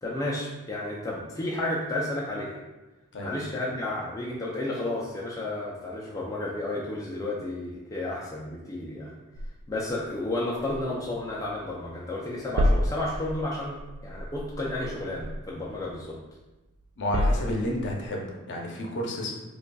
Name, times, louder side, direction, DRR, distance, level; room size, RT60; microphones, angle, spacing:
voice 1, 0.0-2.6 3.2-9.1 9.7-13.8 14.0-16.2, left 1 dB, 15° left, -5 dB, 0.4 m, -32 dB
sound 1, 9.4-11.9 12.2-16.4 16.8-18.1, equal, 80° right, 0.3 m, -31 dB
voice 2, 17.0-19.4, left 1 dB, 55° left, 0 dB, 0.6 m, -31 dB
5.1 x 2.3 x 2.2 m, 1.1 s
head